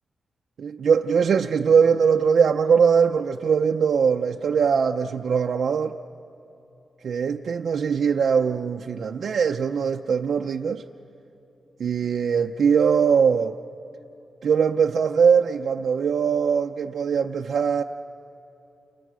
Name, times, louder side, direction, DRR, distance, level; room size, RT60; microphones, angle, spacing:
voice 1, 0.6-6.0 7.0-10.8 11.8-13.5 14.4-17.8, right 6 dB, 70° right, 0.5 m, -21 dB
29.5 x 28.0 x 6.2 m
wide cardioid pair, 165°, 0 cm